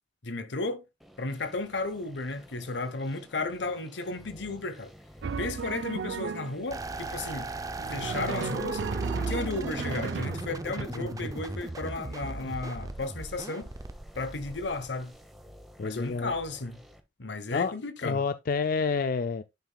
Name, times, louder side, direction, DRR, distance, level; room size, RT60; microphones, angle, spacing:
voice 1, 0.2-0.8 1.2-4.9 5.4-7.5 7.9-8.9 9.2-13.7 14.2-15.2 15.8-16.8 17.2-18.2, left 3 dB, 80° left, 1.0 m, -34 dB
sound 1, 1.0-17.0, equal, ahead, 0.9 m, -52 dB
Drum, 5.2-6.7 7.8-10.8, right 5 dB, 85° right, 0.5 m, -34 dB
sound 2, 6.7-15.2, right 2 dB, 20° right, 0.5 m, -38 dB
voice 2, 15.8-16.3 17.5-17.7 18.0-19.4, left 5 dB, 50° left, 0.4 m, -28 dB
10.5 x 5.6 x 2.2 m
head